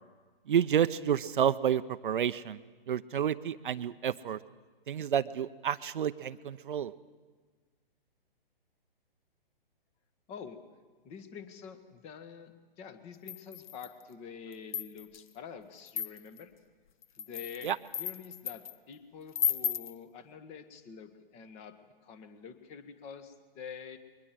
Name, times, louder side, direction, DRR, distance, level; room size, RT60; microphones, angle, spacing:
voice 1, 0.5-2.6 2.9-4.4 4.9-6.9 17.6-17.8, right 9 dB, 60° right, 12 dB, 0.7 m, -29 dB
voice 2, 10.3-10.6 11.0-16.5 17.2-24.0, left 6 dB, 20° left, 11 dB, 1.5 m, -47 dB
sound 1, 13.3-14.0 14.5-15.2 15.9-16.4 17.0-18.7 19.3-19.9, left 9 dB, 50° left, 0.8 m, -34 dB
22.0 x 19.5 x 7.6 m, 1.4 s
figure-of-eight pair, 130°, 29 cm